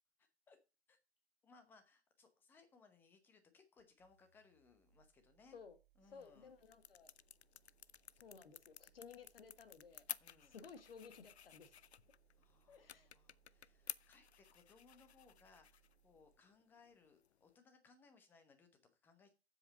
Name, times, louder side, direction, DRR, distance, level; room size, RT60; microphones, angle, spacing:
voice 1, 0.2-0.6 0.9-1.0 1.4-5.6 6.0-6.5 10.2-10.5 12.4-19.3, left 4 dB, 5° left, 8 dB, 0.8 m, -67 dB
sound 1, 3.8-16.5, right 10 dB, 50° right, 1.7 m, -75 dB
sound 2, 6.0-17.6, left 9 dB, 75° left, 0.5 m, -55 dB
voice 2, 6.1-7.1 8.2-10.0 10.4-11.8 12.7-13.1, left 5 dB, 60° left, 10 dB, 1.7 m, -57 dB
7.7 x 5.7 x 6.4 m, 0.30 s
figure-of-eight pair, 140°, 32 cm